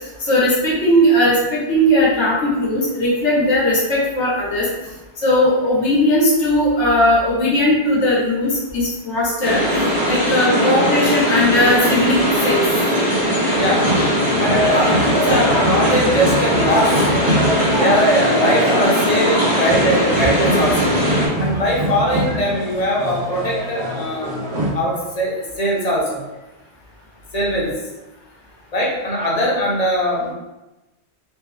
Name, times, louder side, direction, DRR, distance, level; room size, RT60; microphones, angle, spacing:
voice 1, 0.3-4.7 5.2-9.6 10.0-12.6, left 1 dB, 85° left, -6 dB, 1.4 m, -17 dB
sound 1, 9.4-21.3, equal, 45° right, 1.5 m, -19 dB
voice 2, 13.5-13.9 14.4-17.1 17.8-20.9 21.4-24.4 24.7-26.2 27.3-27.7 28.7-30.3, equal, 40° left, -3 dB, 0.9 m, -20 dB
sound 2, 13.5-24.7, equal, 30° right, 0.7 m, -23 dB
3.3 x 2.8 x 3.2 m, 1.0 s
omnidirectional pair, 1.2 m